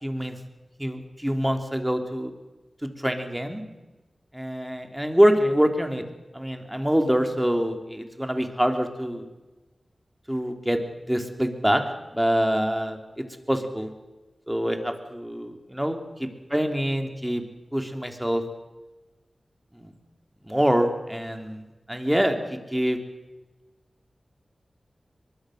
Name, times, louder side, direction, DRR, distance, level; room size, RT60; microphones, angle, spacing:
voice 1, 0.0-0.4 0.8-2.3 2.8-3.6 4.3-6.0 6.3-9.3 10.3-10.8 11.1-11.8 12.1-13.9 14.5-16.0 16.5-17.4 17.7-18.4 19.8-19.9 20.4-21.6 21.9-22.4 22.7-23.0, equal, 5° right, 5 dB, 3.2 m, -25 dB
23.0 x 21.0 x 6.5 m, 1.1 s
cardioid pair, 50°, 0 cm